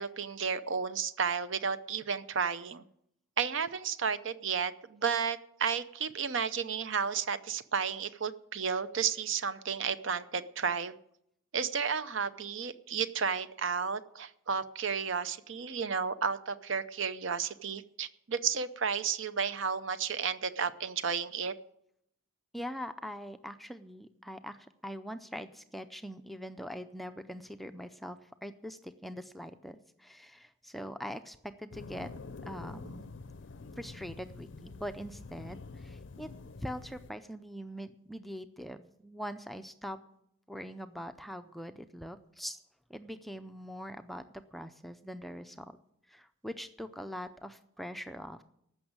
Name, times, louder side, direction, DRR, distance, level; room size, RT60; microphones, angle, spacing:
voice 1, 0.0-2.8 3.4-10.9 11.5-21.5, right 6 dB, 65° right, 13 dB, 0.6 m, -32 dB
voice 2, 22.5-32.1 32.4-33.1 33.8-36.3 36.6-40.0 40.5-42.6 42.9-45.8 46.1-48.4, equal, ahead, 8 dB, 0.4 m, -43 dB
sound 1, 31.7-37.1, left 3 dB, 60° left, 0.5 m, -47 dB
15.0 x 6.2 x 8.7 m, 0.75 s
head